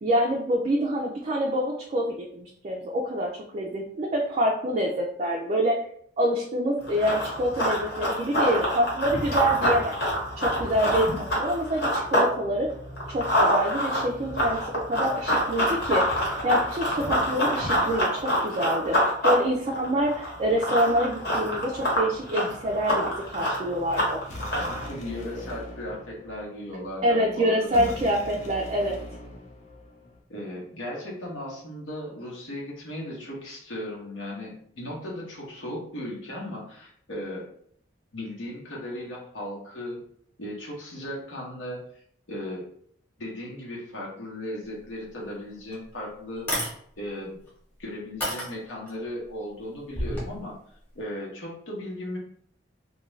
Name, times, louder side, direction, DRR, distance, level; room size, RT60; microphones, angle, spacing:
voice 1, 0.0-5.8 6.2-10.0 10.4-11.1 11.4-12.7 13.1-14.6 14.8-19.0 19.2-24.2 27.0-29.0, equal, 35° right, -1 dB, 0.3 m, -26 dB
Run, 6.8-12.3 12.7-24.9, equal, 55° left, 1.0 m, -26 dB
sound 1, 24.2-30.2, left 2 dB, 40° left, 0.5 m, -41 dB
voice 2, 24.9-27.9 30.3-37.5 38.1-40.0 40.4-41.8 42.3-42.7 43.2-46.5 47.0-47.4 47.8-50.6 50.9-52.2, left 1 dB, 90° left, -3 dB, 1.0 m, -36 dB
sound 2, 45.2-45.3 45.7-45.8 46.4-46.7 47.5-47.6 48.2-48.9 49.9-50.3, equal, 10° left, 0.9 m, -29 dB
2.4 x 2.2 x 3.0 m, 0.63 s
head